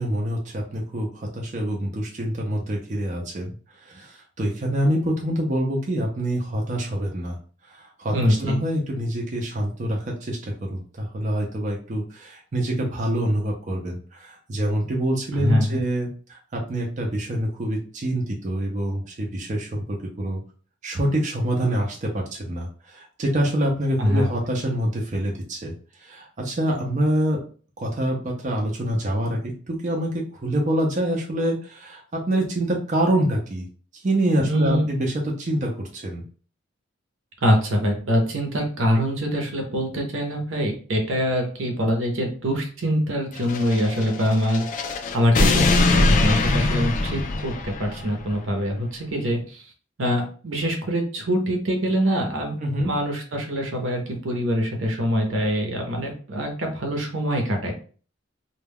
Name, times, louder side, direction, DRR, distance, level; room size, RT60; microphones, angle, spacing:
voice 1, 0.0-3.5 3.9-7.4 7.7-20.4 20.8-25.7 26.0-27.4 27.8-30.1 30.4-33.7 33.9-36.2 52.6-52.9, right 1 dB, 40° right, -1 dB, 0.5 m, -26 dB
voice 2, 8.1-8.6 15.4-15.8 24.0-24.3 34.4-34.9 37.4-44.7 45.1-49.6 50.0-52.6 52.8-57.7, equal, 75° right, 2 dB, 0.7 m, -24 dB
sound 1, 43.4-48.1, left 2 dB, 40° left, 0.3 m, -22 dB
2.2 x 2.2 x 3.4 m, 0.41 s
head